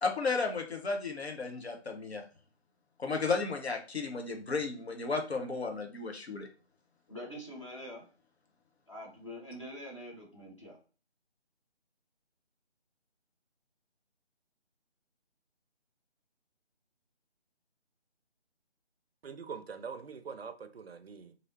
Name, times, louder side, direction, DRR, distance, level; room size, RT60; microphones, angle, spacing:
voice 1, 0.0-2.2 3.0-6.5, left 4 dB, 65° left, 0.9 m, -33 dB
voice 2, 7.1-8.0 8.9-10.8, equal, 25° left, 0.7 m, -45 dB
voice 3, 19.2-21.4, right 6 dB, 60° right, 0.5 m, -43 dB
3.1 x 2.7 x 2.7 m
figure-of-eight pair, 155°, 35 cm